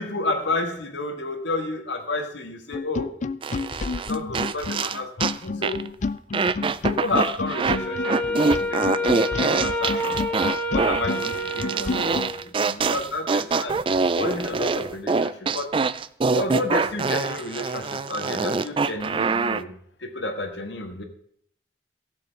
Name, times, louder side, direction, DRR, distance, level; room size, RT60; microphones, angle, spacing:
voice 1, 0.0-3.2 3.5-5.9 6.8-10.2 10.7-13.8 14.2-15.8 16.3-19.7 20.0-21.0, left 2 dB, 85° left, 5 dB, 1.7 m, -31 dB
sound 1, 2.7-12.3, left 3 dB, 40° left, 0.4 m, -30 dB
sound 2, 3.4-5.4 5.6-5.9 6.3-7.8 8.0-19.6, right 4 dB, 30° right, 0.4 m, -25 dB
Wind instrument woodwind instrument, 7.7-12.4, left 1 dB, 10° left, 1.4 m, -28 dB
15.0 x 6.9 x 5.8 m, 0.64 s
head